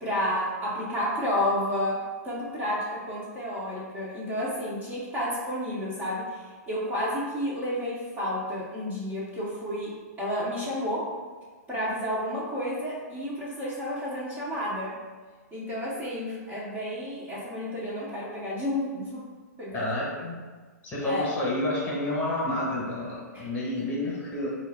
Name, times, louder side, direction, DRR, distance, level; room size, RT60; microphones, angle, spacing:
voice 1, 0.0-11.1 11.7-15.0 15.5-19.2 19.6-19.9 21.0-21.3 23.3-23.5 23.8-23.9, left 1 dB, 15° right, -7 dB, 0.7 m, -31 dB
voice 2, 19.7-20.4 20.8-24.5, left 1 dB, 20° left, -5 dB, 1.1 m, -29 dB
4.2 x 2.3 x 3.4 m, 1.4 s
hypercardioid pair, 140°, 9 cm